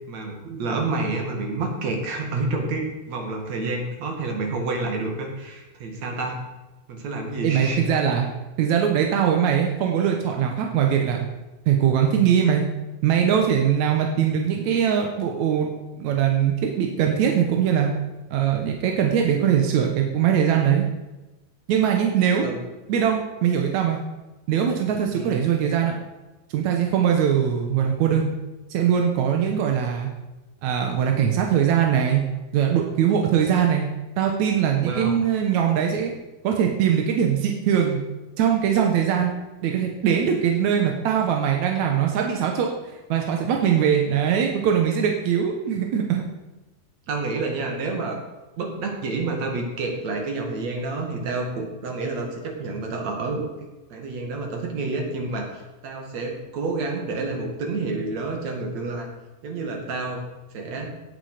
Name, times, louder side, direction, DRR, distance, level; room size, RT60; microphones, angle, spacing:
voice 1, 0.1-6.4 6.9-7.9 22.4-22.6 25.1-25.4 34.7-35.2 47.1-48.2 48.6-59.1 59.4-60.2 60.5-61.0, right 3 dB, 50° right, 2 dB, 3.0 m, -29 dB
voice 2, 7.4-8.3 8.6-11.3 11.7-12.7 13.0-15.7 16.0-17.9 18.3-20.9 21.7-22.5 22.9-24.0 24.5-26.0 26.5-28.3 28.7-30.1 30.6-32.2 32.5-33.9 34.2-36.1 36.4-38.0 38.4-39.3 39.6-42.7 43.1-46.2, right 8 dB, 65° right, 2 dB, 1.9 m, -21 dB
17.5 x 8.5 x 5.0 m, 1.1 s
omnidirectional pair, 4.6 m